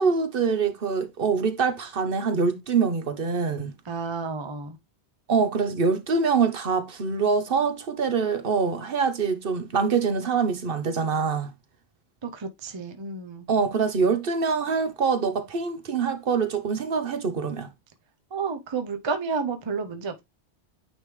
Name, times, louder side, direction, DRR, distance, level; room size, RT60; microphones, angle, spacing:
voice 1, 0.0-3.7 5.3-11.5 13.5-17.7, right 5 dB, 60° right, 1.0 m, -24 dB
voice 2, 3.9-4.8 12.2-13.5 18.3-20.2, right 5 dB, 30° right, 0.6 m, -31 dB
9.1 x 3.5 x 3.1 m
omnidirectional pair, 1.1 m